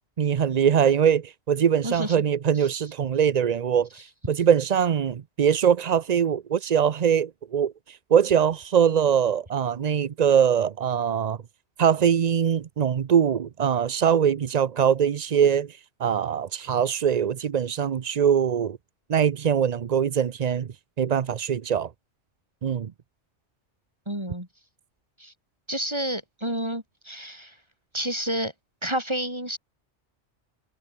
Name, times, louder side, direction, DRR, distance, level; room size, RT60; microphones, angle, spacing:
voice 1, 0.2-11.4 11.8-18.8 19.1-21.9 22.6-22.9, right 8 dB, 45° right, 0.6 m, -22 dB
voice 2, 1.8-2.2 2.6-2.7 24.1-24.5 25.2-25.3 25.7-27.5 27.9-28.5 28.8-29.6, right 1 dB, 20° right, 7.5 m, -30 dB
omnidirectional pair, 1.2 m